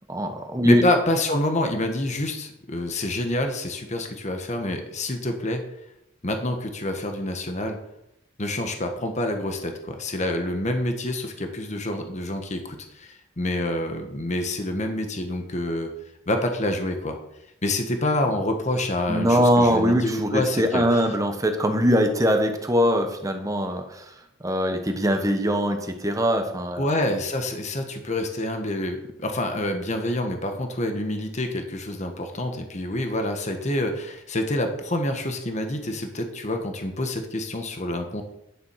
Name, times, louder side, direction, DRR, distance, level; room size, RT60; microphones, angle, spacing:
voice 1, 0.1-0.8 19.1-24.1 24.4-26.9, equal, 20° right, 5 dB, 1.2 m, -22 dB
voice 2, 0.6-5.6 6.2-7.8 8.4-15.9 16.3-17.2 17.6-21.0 26.8-38.2, left 1 dB, 40° left, 5 dB, 1.4 m, -27 dB
10.5 x 7.3 x 5.8 m, 0.79 s
head